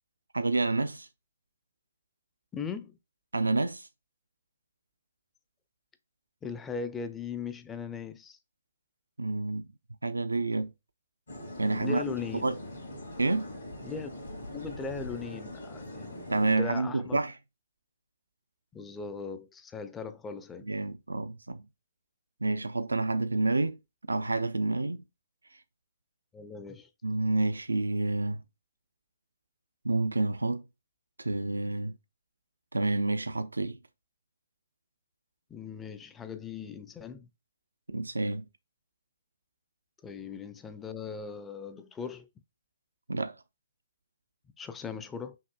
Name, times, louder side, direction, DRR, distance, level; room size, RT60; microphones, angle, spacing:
voice 1, 0.3-1.1 3.3-3.9 9.2-9.7 10.0-10.7 11.6-12.1 12.4-12.6 13.2-13.5 16.3-17.4 20.7-21.6 22.4-23.8 24.1-25.0 27.0-28.4 29.8-30.6 31.2-32.0 32.7-33.8 37.9-38.4 43.1-43.4, right 2 dB, 85° right, 0.3 m, -29 dB
voice 2, 2.5-3.0 6.4-8.4 11.8-12.5 13.8-14.1 14.5-17.2 18.7-20.7 26.3-26.9 35.5-37.3 40.0-42.3 44.6-45.4, left 5 dB, 15° left, 0.4 m, -39 dB
sound 1, 11.3-16.6, left 1 dB, 75° left, 2.5 m, -42 dB
5.7 x 2.5 x 2.2 m
figure-of-eight pair, 130°, 0 cm